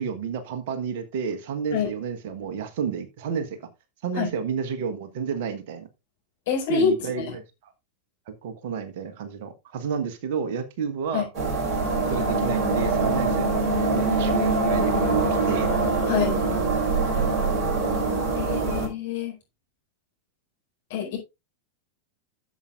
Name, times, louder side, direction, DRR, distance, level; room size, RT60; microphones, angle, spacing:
voice 1, 0.0-3.6 4.0-5.9 6.7-7.4 8.3-11.3 11.7-13.7 13.9-15.7 16.5-16.7 17.1-17.3 18.0-18.8, right 6 dB, 50° right, 9 dB, 1.4 m, -31 dB
voice 2, 6.5-7.2 11.1-11.3 16.1-16.4 18.3-19.3 20.9-21.2, left 7 dB, 55° left, 0 dB, 4.5 m, -26 dB
sound 1, 11.3-18.9, right 3 dB, 30° right, 4.8 m, -23 dB
12.5 x 7.5 x 2.5 m, 0.24 s
figure-of-eight pair, 90°, 0 cm